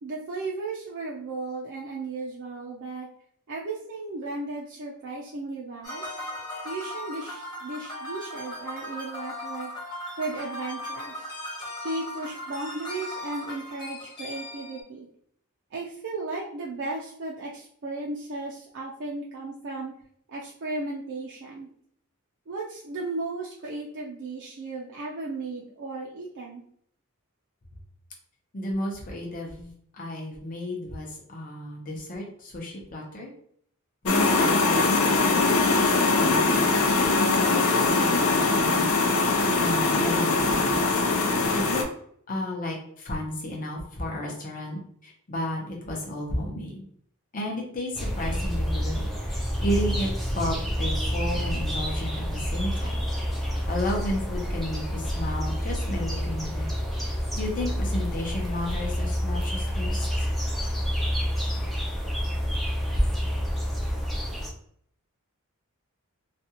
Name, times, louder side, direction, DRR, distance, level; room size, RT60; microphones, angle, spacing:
voice 1, 0.0-3.1 3.5-6.1 6.6-9.7 10.2-11.3 11.8-15.1 15.7-19.9 20.3-21.7 22.5-26.6, right 3 dB, 55° right, -3 dB, 0.5 m, -35 dB
sound 1, 5.8-14.8, left 1 dB, 20° left, 1.0 m, -37 dB
voice 2, 28.5-33.3 34.0-39.3 39.6-41.0 41.5-41.8 42.3-46.8 47.3-53.0 53.4-56.7 57.0-60.1, left 1 dB, 40° left, -2 dB, 0.7 m, -33 dB
sound 2, 34.1-41.8, left 3 dB, 85° left, 0.5 m, -22 dB
sound 3, 47.9-64.5, equal, ahead, 0.5 m, -28 dB
2.5 x 2.3 x 2.8 m, 0.65 s
head